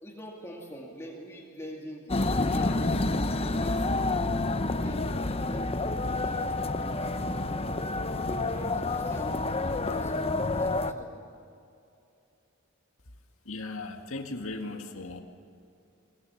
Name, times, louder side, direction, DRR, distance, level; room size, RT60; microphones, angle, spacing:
voice 1, 0.0-3.9 4.8-7.3 8.3-11.2, equal, 15° left, -2 dB, 2.4 m, -44 dB
sound 1, 2.1-10.9, left 2 dB, 30° left, 0.8 m, -29 dB
voice 2, 13.5-15.2, left 2 dB, 75° left, 4 dB, 1.9 m, -37 dB
23.0 x 21.5 x 7.2 m, 2.6 s
head